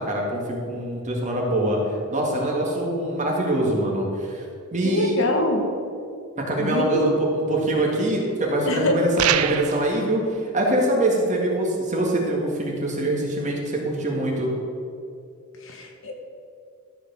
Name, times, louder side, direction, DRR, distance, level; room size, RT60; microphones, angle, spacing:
voice 1, 0.0-1.8 2.1-4.4 4.7-5.2 6.4-10.2 10.5-14.5, right 1 dB, 35° right, -1 dB, 1.9 m, -24 dB
voice 2, 4.8-5.7 6.4-7.0 8.7-9.0 15.6-16.2, left 1 dB, 60° left, 3 dB, 1.2 m, -25 dB
sound 1, 9.2-9.9, right 10 dB, 75° right, 0.5 m, -23 dB
13.0 x 5.0 x 6.8 m, 2.5 s
head